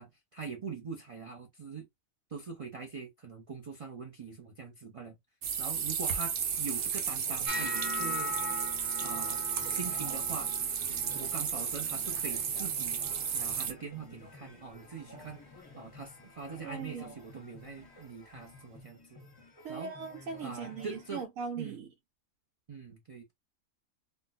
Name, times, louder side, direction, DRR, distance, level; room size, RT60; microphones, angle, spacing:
voice 1, 0.0-1.9 2.3-5.2 5.6-8.4 9.0-9.4 9.7-10.5 11.1-13.0 13.3-15.4 15.8-19.2 19.7-19.9 20.4-21.2 21.6-21.8 22.7-23.3, right 5 dB, 50° right, 0.4 m, -43 dB
sound 1, 5.4-13.7, right 7 dB, 65° right, 0.9 m, -33 dB
sound 2, 7.2-21.2, left 2 dB, 25° left, 0.6 m, -54 dB
sound 3, 7.5-13.6 13.8-14.3 14.7-15.2 15.9-16.1 17.8-17.9, left 2 dB, 25° right, 1.0 m, -42 dB
voice 2, 16.6-17.0 19.6-21.9, right 5 dB, 85° right, 1.1 m, -39 dB
2.5 x 2.2 x 3.9 m
omnidirectional pair, 1.4 m